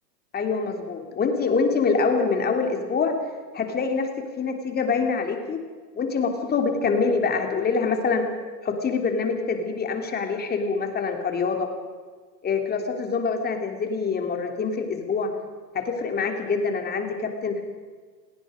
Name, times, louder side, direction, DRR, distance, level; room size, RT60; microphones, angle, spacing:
voice 1, 0.3-3.1 3.5-4.1 4.4-5.6 5.9-8.2 8.6-11.7 12.4-15.3 15.7-17.7, left 4 dB, 20° left, 4 dB, 3.2 m, -25 dB
29.0 x 18.0 x 5.1 m, 1.5 s
hypercardioid pair, 130°, 50 cm